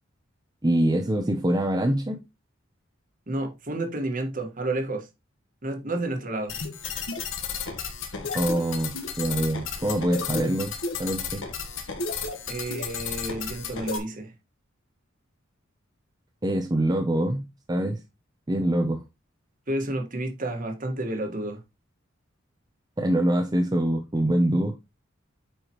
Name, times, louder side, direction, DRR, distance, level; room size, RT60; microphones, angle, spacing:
voice 1, 0.6-2.2 8.3-11.4 16.4-17.4 17.7-18.0 18.5-19.0 23.0-24.7, right 1 dB, 20° right, 0.7 m, -24 dB
voice 2, 3.3-5.1 5.6-6.5 12.5-14.3 19.7-21.6, right 1 dB, 40° right, 1.6 m, -30 dB
sound 1, 6.5-14.0, left 5 dB, 75° left, 1.4 m, -33 dB
8.8 x 4.9 x 3.0 m
head